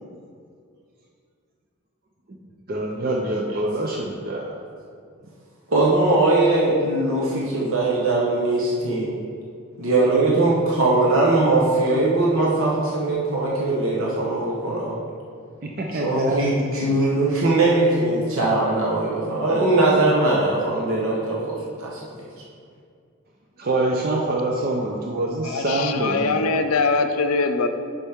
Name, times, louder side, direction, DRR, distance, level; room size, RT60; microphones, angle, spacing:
voice 1, 2.7-4.5 15.6-17.0 23.6-26.6, right 1 dB, 40° right, -1 dB, 0.6 m, -25 dB
voice 2, 5.7-9.2 9.8-15.0 16.0-22.0, right 2 dB, 65° right, -5 dB, 1.2 m, -20 dB
voice 3, 25.4-27.7, left 4 dB, 75° left, 8 dB, 0.5 m, -22 dB
9.9 x 5.5 x 3.6 m, 2.3 s
head